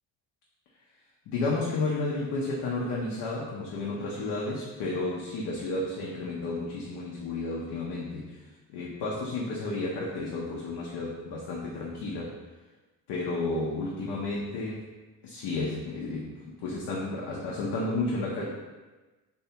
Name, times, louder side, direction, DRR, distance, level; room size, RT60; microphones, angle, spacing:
voice 1, 1.3-8.4 8.7-12.3 13.1-14.9 15.2-18.5, left 2 dB, 70° left, -4 dB, 0.6 m, -32 dB
2.6 x 2.1 x 2.7 m, 1.2 s
supercardioid pair, 65°, 42 cm